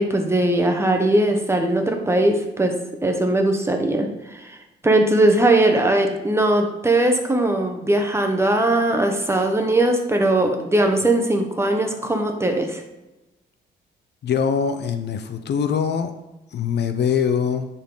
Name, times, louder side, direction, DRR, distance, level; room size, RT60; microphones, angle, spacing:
voice 1, 0.0-2.7 3.0-4.6 4.8-12.8, right 1 dB, 15° right, 4 dB, 1.2 m, -20 dB
voice 2, 14.2-16.1 16.5-17.7, left 7 dB, 60° left, 9 dB, 0.7 m, -23 dB
10.0 x 4.4 x 3.9 m, 0.99 s
cardioid pair, 90°, 20 cm